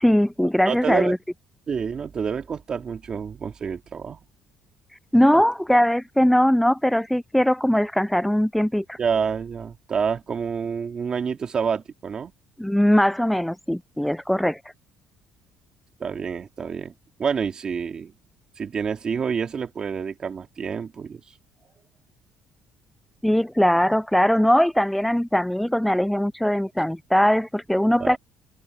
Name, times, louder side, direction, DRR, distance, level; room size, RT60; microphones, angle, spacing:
voice 1, 0.0-1.2 5.1-9.0 12.6-14.6 23.2-28.2, equal, 5° left, 0.3 m, -20 dB
voice 2, 0.7-1.1 1.7-4.2 5.3-5.4 9.0-12.3 16.0-16.9 17.2-18.1 18.6-21.2 28.0-28.2, right 6 dB, 35° right, 2.2 m, -28 dB
cardioid pair, 130°, 2 cm